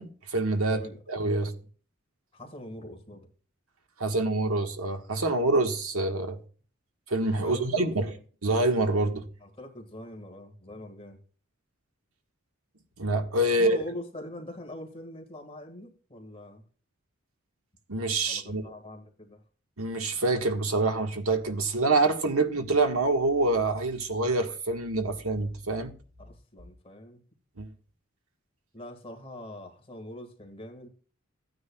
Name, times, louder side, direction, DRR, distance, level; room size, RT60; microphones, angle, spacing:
voice 1, 0.0-0.8 1.1-1.5 4.0-6.4 7.1-8.1 8.4-9.3 13.0-13.8 17.9-18.6 19.8-25.9 27.6-27.7, right 2 dB, 85° right, 1.5 m, -26 dB
voice 2, 0.7-1.7 2.3-3.3 7.4-8.2 9.4-11.2 13.6-16.7 18.3-19.4 26.2-27.2 28.7-30.9, left 1 dB, 25° left, 1.9 m, -43 dB
15.0 x 9.5 x 2.3 m
head